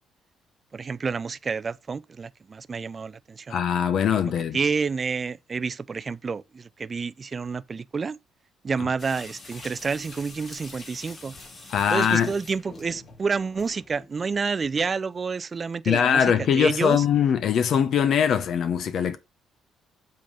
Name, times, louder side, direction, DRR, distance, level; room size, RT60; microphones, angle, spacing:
voice 1, 0.7-3.6 4.5-8.2 8.6-11.4 11.9-17.0, right 5 dB, 30° right, 0.4 m, -29 dB
voice 2, 3.5-4.6 11.7-12.3 15.9-19.2, left 8 dB, 60° left, 0.7 m, -22 dB
sound 1, 9.0-14.1, left 3 dB, 40° left, 2.7 m, -44 dB
7.6 x 3.7 x 5.0 m
cardioid pair, 115°, 0 cm